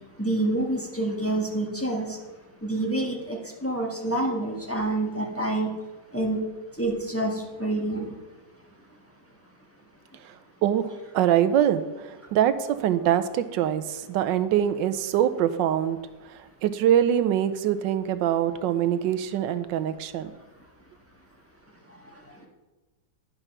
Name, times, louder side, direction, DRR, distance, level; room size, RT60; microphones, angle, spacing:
voice 1, 0.2-2.2 2.6-5.7 6.1-6.4 6.8-8.1, right 1 dB, 10° left, -1 dB, 1.2 m, -27 dB
voice 2, 10.6-11.8 12.3-16.0 16.6-20.3, right 10 dB, 90° right, 11 dB, 1.3 m, -23 dB
10.5 x 5.5 x 5.9 m, 1.2 s
omnidirectional pair, 1.9 m